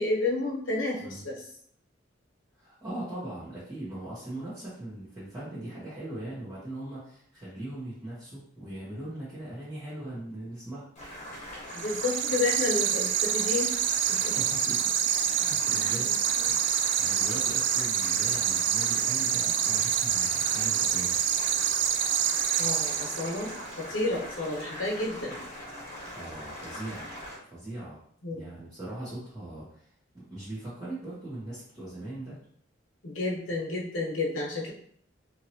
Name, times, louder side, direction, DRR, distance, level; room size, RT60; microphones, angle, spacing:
voice 1, 0.0-1.4 11.7-13.8 14.1-14.4 15.7-16.6 22.6-25.4 28.2-28.5 33.0-34.7, left 2 dB, 85° left, -2 dB, 0.9 m, -31 dB
voice 2, 2.5-10.9 14.2-14.9 15.2-16.1 16.4-21.2 26.1-27.1 27.4-28.0 28.3-29.8 30.1-32.4, right 1 dB, 20° right, -13 dB, 1.1 m, -40 dB
Boiling, 11.0-27.4, equal, 40° left, 1.2 m, -42 dB
sound 1, 11.7-23.6, right 9 dB, 65° right, 0.3 m, -27 dB
2.9 x 2.8 x 2.7 m, 0.62 s
head